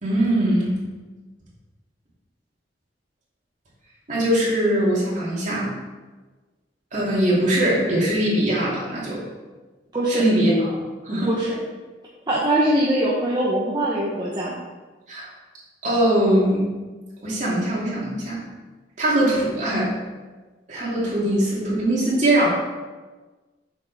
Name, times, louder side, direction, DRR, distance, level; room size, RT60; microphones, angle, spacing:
voice 1, 0.0-0.8 4.1-5.7 6.9-9.2 10.1-10.7 11.0-11.3 15.1-15.3 15.8-16.6 17.2-18.4 19.0-19.9 20.7-22.5, right 1 dB, 40° right, -6 dB, 2.7 m, -21 dB
voice 2, 9.9-10.2 11.3-11.6 12.3-14.6, right 1 dB, 25° right, -5 dB, 1.0 m, -22 dB
7.7 x 6.4 x 4.2 m, 1.3 s
head